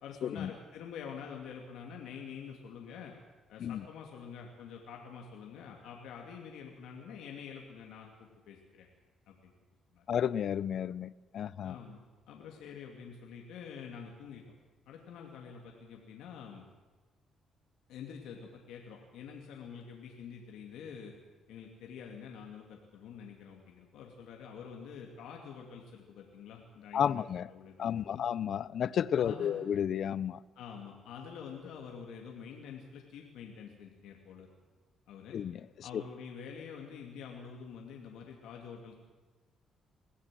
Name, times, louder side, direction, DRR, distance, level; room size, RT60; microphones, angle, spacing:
voice 1, 0.0-3.1 3.5-8.9 9.3-9.4 9.9-10.0 11.6-14.4 14.9-16.6 17.9-21.1 21.5-27.2 27.5-28.2 29.2-29.6 30.6-34.5 35.1-35.4 35.8-38.9, left 7 dB, 85° left, 1 dB, 2.5 m, -47 dB
voice 2, 10.1-11.8 26.9-27.5 27.8-30.4 35.3-36.0, left 9 dB, 65° left, 19 dB, 0.6 m, -32 dB
22.0 x 15.5 x 7.7 m, 1.3 s
cardioid pair, 90°, 0 cm